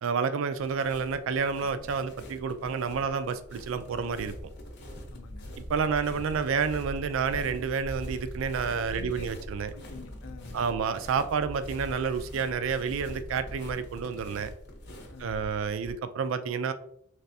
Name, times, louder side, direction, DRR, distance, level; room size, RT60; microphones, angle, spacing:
voice 1, 0.0-4.3 5.7-9.7 10.5-14.5 15.2-16.7, right 6 dB, 75° right, 11 dB, 0.3 m, -29 dB
sound 1, 0.6-15.9, equal, 60° left, 0.8 m, -42 dB
voice 2, 5.1-5.6 8.8-9.3 9.7-10.7 15.1-15.5, left 5 dB, 80° left, 10 dB, 0.4 m, -47 dB
3.3 x 3.2 x 2.6 m, 0.68 s
head